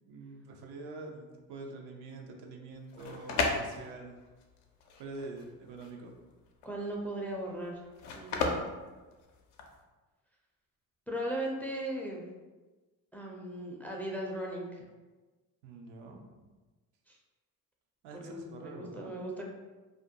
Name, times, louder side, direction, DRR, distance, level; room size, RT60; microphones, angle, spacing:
voice 1, 0.1-4.2 5.0-6.2 8.5-8.6 15.6-16.5 18.0-19.1, right 3 dB, 80° right, 2 dB, 0.6 m, -45 dB
sound 1, 2.7-9.8, left 3 dB, 80° left, 0.5 m, -35 dB
voice 2, 6.6-7.8 8.1-8.8 11.1-12.3 13.1-14.9 17.1-17.2 18.2-19.5, right 1 dB, 5° left, -2 dB, 0.4 m, -38 dB
2.4 x 2.1 x 2.7 m, 1.2 s
supercardioid pair, 70°, 40 cm